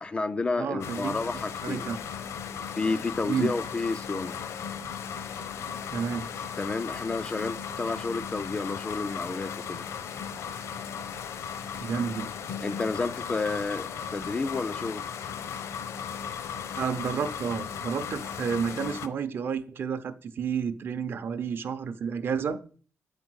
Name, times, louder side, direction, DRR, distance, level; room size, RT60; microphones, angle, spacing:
voice 1, 0.0-1.8 2.7-4.4 6.6-9.8 12.6-15.0, left 3 dB, 20° left, 0.3 m, -31 dB
voice 2, 0.6-1.2 1.6-2.0 3.3-3.5 5.9-6.3 11.8-12.3 16.8-22.6, right 6 dB, 50° right, 0.7 m, -30 dB
sound 1, 0.8-19.1, left 7 dB, 80° left, 0.7 m, -36 dB
7.9 x 5.0 x 6.2 m
wide cardioid pair, 175°, 5 cm